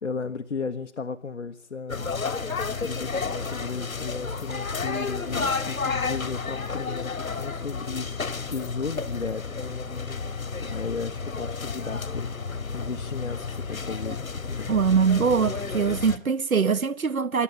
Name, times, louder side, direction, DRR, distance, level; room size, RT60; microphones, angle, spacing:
voice 1, 0.0-2.2 2.8-9.7 10.6-14.8, left 5 dB, 60° left, 1.3 m, -35 dB
sound 1, 1.9-16.2, left 4 dB, 85° left, 2.1 m, -31 dB
voice 2, 14.7-17.4, right 6 dB, 85° right, 1.4 m, -22 dB
27.0 x 12.5 x 8.6 m
hypercardioid pair, 180°, 41 cm